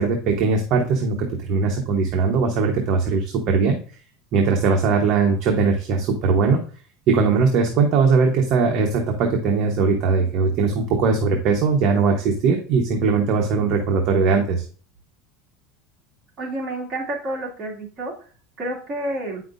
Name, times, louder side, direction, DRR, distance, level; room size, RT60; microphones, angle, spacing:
voice 1, 0.0-3.8 4.3-6.6 7.1-14.6, right 4 dB, 40° right, 2 dB, 1.0 m, -20 dB
voice 2, 16.4-18.1 18.6-19.4, right 1 dB, 20° right, -4 dB, 2.2 m, -29 dB
8.9 x 5.8 x 2.5 m, 0.41 s
supercardioid pair, 170°, 0 cm